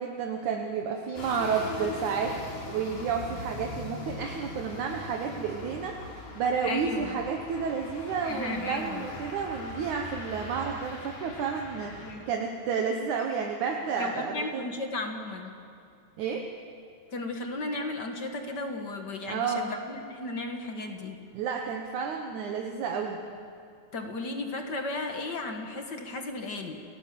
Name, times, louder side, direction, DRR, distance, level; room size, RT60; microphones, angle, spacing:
voice 1, 0.0-2.4 2.7-6.0 6.4-12.0 12.3-14.6 16.2-16.4 19.3-19.7 21.3-23.2, right 6 dB, 70° right, 2 dB, 2.6 m, -31 dB
sound 1, 1.2-12.1, left 3 dB, 75° left, 4.9 m, -41 dB
voice 2, 6.6-7.2 8.2-9.1 12.0-12.3 14.0-15.6 17.1-21.2 23.9-26.8, left 2 dB, 40° left, 4 dB, 1.8 m, -35 dB
29.5 x 18.5 x 7.6 m, 2.4 s
omnidirectional pair, 3.7 m